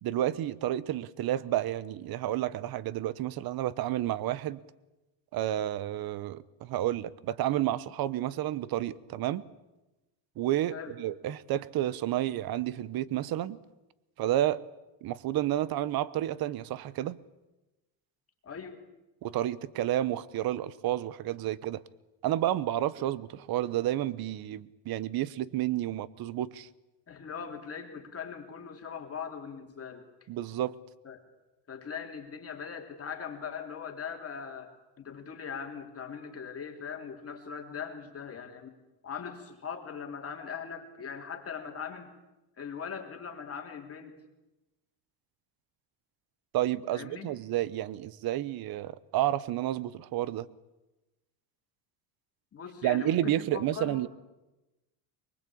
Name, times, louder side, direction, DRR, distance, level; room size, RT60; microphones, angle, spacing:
voice 1, 0.0-4.6 5.3-9.4 10.4-13.6 14.2-14.6 15.0-17.2 19.2-21.8 22.2-26.7 30.3-30.7 46.5-50.5 52.8-54.1, right 13 dB, 45° right, 1.1 m, -30 dB
voice 2, 18.4-18.8 27.1-30.3 31.0-31.2 31.7-38.7 39.0-42.1 42.6-44.1 46.9-47.3 52.5-54.0, left 6 dB, 30° left, 3.3 m, -40 dB
24.5 x 22.0 x 8.6 m
cardioid pair, 135°, 49 cm